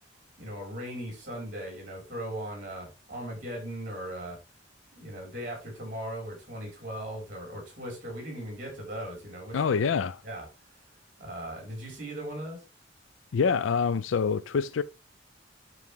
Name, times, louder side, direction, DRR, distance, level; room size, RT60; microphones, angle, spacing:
voice 1, 0.4-4.4 4.9-9.6 10.2-10.5 11.2-12.6, right 1 dB, 45° right, 4.8 m, -38 dB
voice 2, 9.5-10.2 13.3-14.8, left 5 dB, 80° left, 0.4 m, -26 dB
9.7 x 5.9 x 3.5 m
head